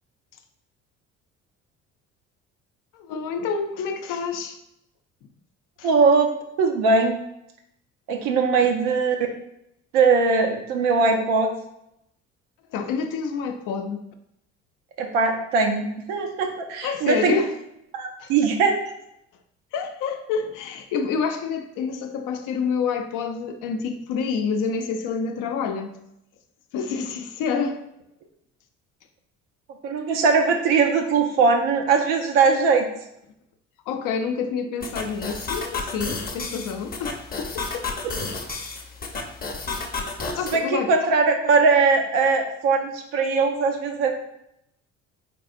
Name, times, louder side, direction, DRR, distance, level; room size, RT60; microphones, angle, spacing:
voice 1, 2.9-4.6 5.8-5.9 8.6-8.7 12.7-14.0 16.8-17.5 18.2-18.3 19.7-25.9 26.7-27.8 33.9-37.7 40.4-40.9, left 5 dB, 65° left, 0.6 m, -28 dB
voice 2, 5.8-6.3 6.6-7.2 8.1-9.2 9.9-11.5 15.0-17.4 17.9-18.8 29.8-32.9 38.0-38.1 40.5-44.1, right 4 dB, 75° right, 0.7 m, -20 dB
sound 1, 34.8-40.6, left 3 dB, 25° left, 0.8 m, -32 dB
4.0 x 3.4 x 2.5 m
hypercardioid pair, 55°, 35 cm